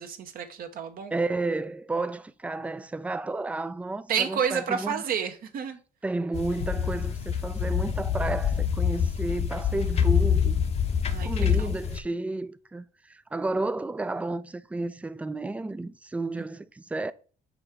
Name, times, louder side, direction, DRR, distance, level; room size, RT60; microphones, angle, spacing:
voice 1, 0.0-1.1 4.1-5.8 11.1-11.7 16.4-16.5, right 7 dB, 60° right, 0.9 m, -30 dB
voice 2, 1.1-5.0 6.0-10.6 11.2-17.1, right 2 dB, 10° right, 0.3 m, -32 dB
sound 1, 6.3-12.0, left 7 dB, 40° left, 0.8 m, -26 dB
5.2 x 3.6 x 5.7 m
cardioid pair, 110°, 17 cm